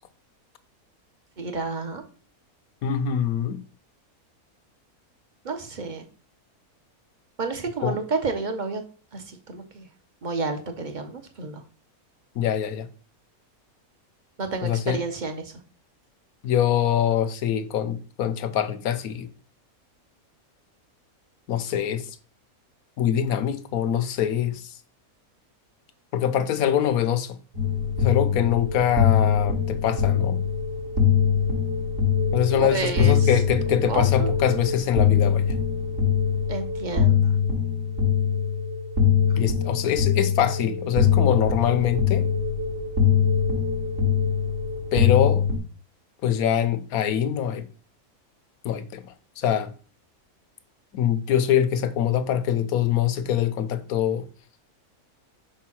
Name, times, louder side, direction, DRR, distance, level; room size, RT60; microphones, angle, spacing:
voice 1, 1.4-2.0 5.4-6.0 7.4-8.8 9.1-9.9 10.2-11.6 14.4-15.5 32.6-33.3 33.9-34.3 36.5-37.3, right 3 dB, 35° right, 1.0 m, -30 dB
voice 2, 2.8-3.6 7.8-8.0 12.3-12.9 14.6-15.0 16.4-19.3 21.5-22.1 23.0-24.7 26.1-27.4 28.0-30.4 32.3-35.6 39.4-42.3 44.9-45.4 46.2-47.7 48.6-49.7 50.9-54.3, left 9 dB, 80° left, 1.2 m, -24 dB
sound 1, 27.5-45.6, left 7 dB, 55° right, 2.4 m, -23 dB
5.1 x 4.6 x 6.0 m
omnidirectional pair, 1.6 m